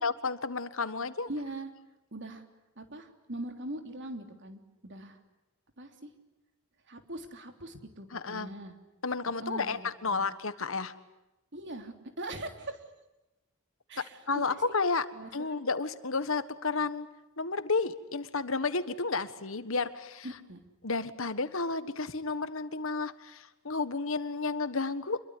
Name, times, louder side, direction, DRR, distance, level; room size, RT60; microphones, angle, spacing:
voice 1, 0.0-1.3 8.1-8.5 9.0-10.9 14.0-15.0 15.3-17.1 17.4-20.2 20.8-25.2, left 4 dB, 65° left, 13 dB, 1.5 m, -32 dB
voice 2, 1.3-1.7 2.1-2.4 2.8-5.2 5.8-6.1 6.9-8.7 9.4-10.3 11.5-12.8 13.9-14.7 15.1-15.5 20.2-20.6, right 1 dB, 55° right, 6 dB, 3.3 m, -41 dB
27.0 x 22.5 x 9.8 m, 0.97 s
head